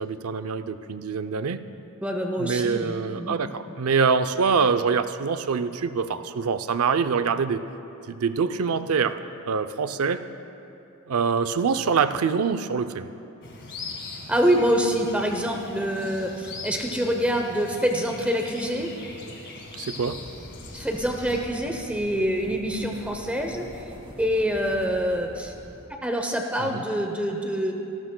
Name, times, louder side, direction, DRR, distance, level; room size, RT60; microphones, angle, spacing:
voice 1, 0.0-1.6 2.4-7.6 8.1-9.2 9.5-10.2 11.1-13.1 19.7-20.2 26.6-26.8, right 5 dB, 80° right, 11 dB, 0.5 m, -25 dB
voice 2, 2.0-3.4 14.3-18.9 20.7-25.5 26.0-27.7, equal, 5° right, 3 dB, 0.7 m, -26 dB
sound 1, 13.4-21.5, left 3 dB, 55° left, 1.8 m, -41 dB
sound 2, 20.0-25.9, equal, 25° right, 2.0 m, -44 dB
26.5 x 12.5 x 2.2 m, 2.9 s
head